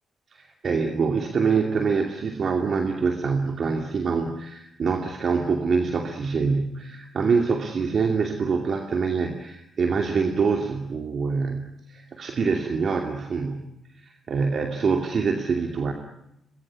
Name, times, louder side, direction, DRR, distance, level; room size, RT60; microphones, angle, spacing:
voice 1, 0.3-15.9, right 5 dB, 55° right, 4 dB, 2.6 m, -25 dB
23.0 x 22.0 x 9.7 m, 0.81 s
supercardioid pair, 50°, 0 cm